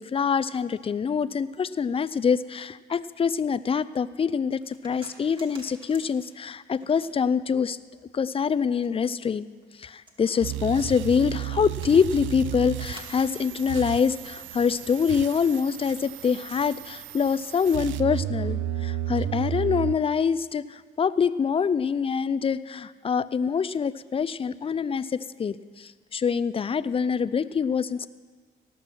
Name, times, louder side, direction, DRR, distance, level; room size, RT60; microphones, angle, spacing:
voice 1, 0.0-7.8 8.1-9.5 9.8-28.1, left 6 dB, 30° left, 16 dB, 0.4 m, -25 dB
sound 1, 4.6-7.4 8.0-14.4, right 1 dB, 25° right, 1.9 m, -51 dB
sound 2, 10.4-19.9, right 12 dB, 80° right, 0.4 m, -33 dB
18.0 x 6.0 x 6.1 m, 1.6 s
cardioid pair, 90°, 20 cm